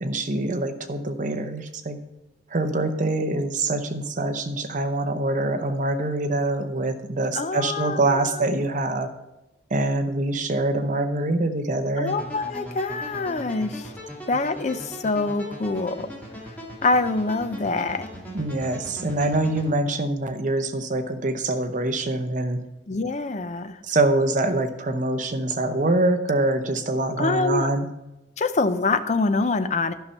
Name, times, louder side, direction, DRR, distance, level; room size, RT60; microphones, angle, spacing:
voice 1, 0.0-2.0 2.5-9.1 9.7-12.2 18.3-22.6 23.8-27.9, right 2 dB, 40° right, 7 dB, 0.8 m, -24 dB
voice 2, 7.3-8.4 12.0-13.9 14.3-16.1 16.8-18.1 22.9-23.8 27.2-27.7 28.4-29.9, left 3 dB, 35° left, 10 dB, 0.5 m, -25 dB
sound 1, 12.1-19.7, equal, 10° left, 2.1 m, -39 dB
11.5 x 5.7 x 5.5 m, 0.96 s
head